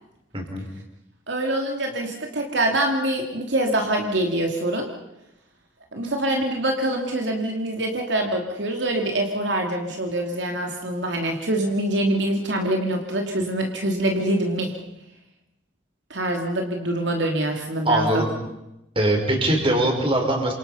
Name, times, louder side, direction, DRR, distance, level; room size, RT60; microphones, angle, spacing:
voice 1, 0.3-0.7 17.8-18.3 18.9-20.5, right 1 dB, 30° right, 2 dB, 5.0 m, -21 dB
voice 2, 1.3-4.9 5.9-14.7 16.1-18.2, right 1 dB, 70° right, 2 dB, 2.7 m, -25 dB
28.5 x 26.0 x 5.7 m, 0.90 s
head